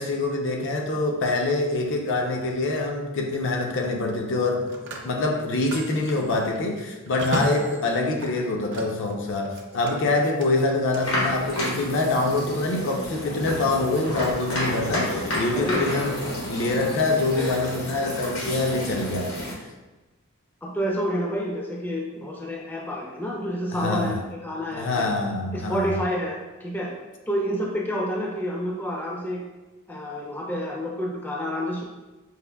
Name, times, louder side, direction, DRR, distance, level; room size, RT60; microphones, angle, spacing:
voice 1, 0.0-19.3 19.6-19.7 23.7-24.2 24.7-26.0, left 2 dB, 60° left, 2 dB, 0.5 m, -25 dB
Telephone, 2.1-2.3 4.3-9.1 9.4-11.0, right 2 dB, 55° right, 0.5 m, -37 dB
sound 1, 10.9-19.5, left 1 dB, 80° left, 1.1 m, -30 dB
voice 2, 15.5-16.1 20.6-24.2 24.4-25.1 25.5-26.9 27.3-29.4 29.9-31.8, equal, 10° left, -2 dB, 0.4 m, -29 dB
4.9 x 2.6 x 2.2 m, 1.1 s
head